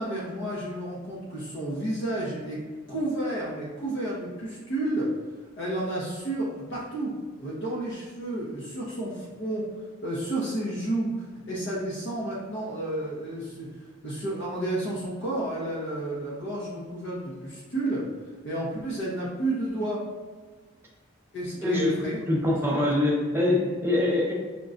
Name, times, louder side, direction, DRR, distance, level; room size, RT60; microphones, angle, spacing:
voice 1, 0.0-5.1 5.6-9.7 10.0-11.1 11.5-18.1 18.4-20.0 21.3-22.2 22.6-22.8, right 1 dB, 55° left, -6 dB, 0.7 m, -31 dB
voice 2, 21.6-21.9 22.3-24.3, left 2 dB, 10° right, -3 dB, 0.5 m, -24 dB
5.1 x 2.2 x 2.5 m, 1.4 s
head